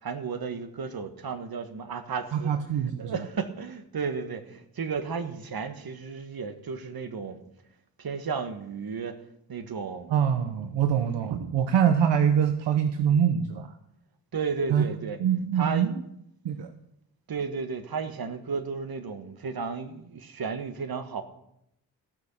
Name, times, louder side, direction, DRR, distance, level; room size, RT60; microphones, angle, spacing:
voice 1, 0.0-2.5 3.0-7.4 8.0-9.2 9.5-10.1 14.3-15.2 15.5-16.0 17.3-21.2, right 5 dB, 55° right, 9 dB, 1.6 m, -33 dB
voice 2, 2.3-3.2 10.1-13.7 14.7-14.8 15.2-15.9 16.4-16.7, right 8 dB, 75° right, 8 dB, 0.9 m, -24 dB
15.0 x 6.5 x 7.3 m, 0.78 s
supercardioid pair, 45°, 43 cm